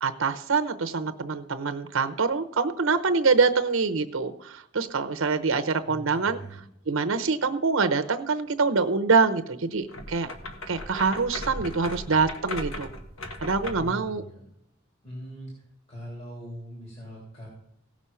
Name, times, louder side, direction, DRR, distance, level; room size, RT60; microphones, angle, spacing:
voice 1, 0.0-6.4 6.9-10.3 10.7-12.9 13.4-14.2, right 4 dB, 85° right, 8 dB, 0.8 m, -25 dB
voice 2, 5.9-6.6 13.7-14.4 15.0-15.5 15.9-17.5, equal, 35° left, -3 dB, 3.4 m, -41 dB
sound 1, 9.9-14.0, left 1 dB, 90° left, 1.7 m, -37 dB
17.0 x 6.2 x 5.6 m, 0.77 s
head